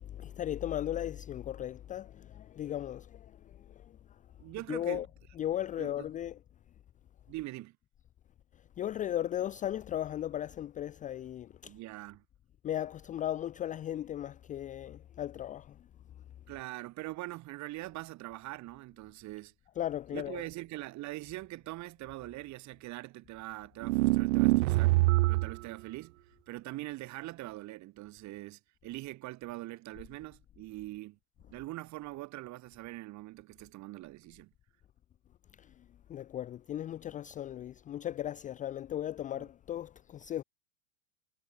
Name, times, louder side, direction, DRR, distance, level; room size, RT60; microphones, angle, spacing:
voice 1, 0.0-3.3 4.7-5.1 5.3-6.4 8.8-11.7 12.6-15.8 19.8-20.4 35.6-35.7 36.1-40.4, left 11 dB, 20° left, 0.6 m, -36 dB
voice 2, 4.4-5.1 5.8-6.1 7.3-7.8 11.6-12.2 16.5-19.5 20.1-25.0 25.3-26.2 26.5-31.2 31.5-34.5 39.3-39.5, right 18 dB, 45° right, 7.0 m, -43 dB
sound 1, 23.8-25.6, right 20 dB, 65° right, 0.5 m, -25 dB
hypercardioid pair, 115°, 40 cm